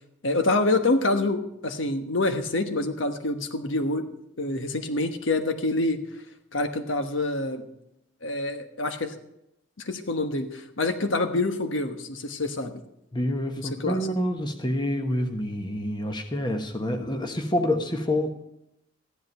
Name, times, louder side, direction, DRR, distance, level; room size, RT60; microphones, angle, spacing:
voice 1, 0.2-4.0 4.4-6.0 6.5-7.7 8.2-9.1 9.8-12.8 13.6-14.0, left 2 dB, 85° left, 7 dB, 1.2 m, -26 dB
voice 2, 13.1-18.4, left 1 dB, 25° left, 6 dB, 1.1 m, -27 dB
14.0 x 10.5 x 5.5 m, 0.82 s
head